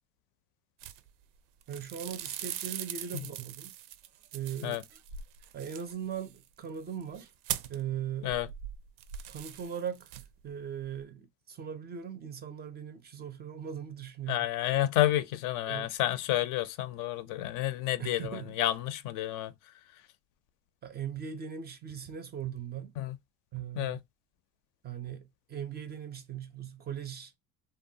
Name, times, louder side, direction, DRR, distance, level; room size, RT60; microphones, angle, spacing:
sound 1, 0.8-1.4 1.6-7.9 8.2-10.5 10.7-11.0, right 10 dB, 85° right, 0.5 m, -41 dB
voice 1, 1.7-3.7 4.3-5.0 5.5-7.3 7.7-8.4 9.3-10.2 10.4-14.9 15.7-15.9 18.0-18.6 20.8-22.9 23.5-24.0 24.8-27.4, right 8 dB, 30° right, 0.4 m, -39 dB
voice 2, 14.3-19.5 23.0-23.2 23.8-24.0, left 13 dB, 60° left, 0.5 m, -30 dB
2.8 x 2.1 x 2.6 m
cardioid pair, 125°, 36 cm